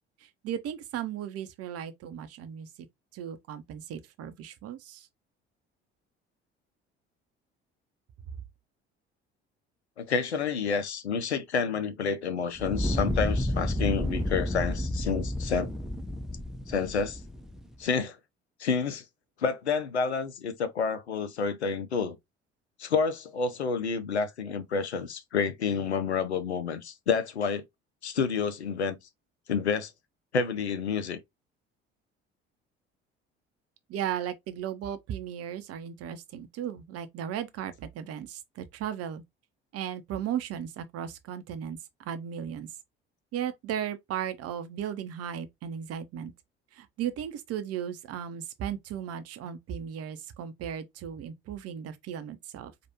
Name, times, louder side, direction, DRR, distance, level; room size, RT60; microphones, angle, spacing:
voice 1, 0.2-2.7 3.1-5.1 8.3-8.4 33.9-39.2 39.7-42.7 43.3-46.3 46.7-52.7, right 9 dB, 50° right, 0.8 m, -36 dB
voice 2, 10.0-15.7 16.7-17.2 17.8-18.2 18.6-19.0 19.4-22.2 22.8-27.6 28.0-29.0 29.5-29.9 30.3-31.2, left 5 dB, 85° left, 0.5 m, -29 dB
Fire, 12.6-17.7, left 1 dB, ahead, 0.8 m, -31 dB
4.7 x 2.5 x 2.9 m
figure-of-eight pair, 55°, 32 cm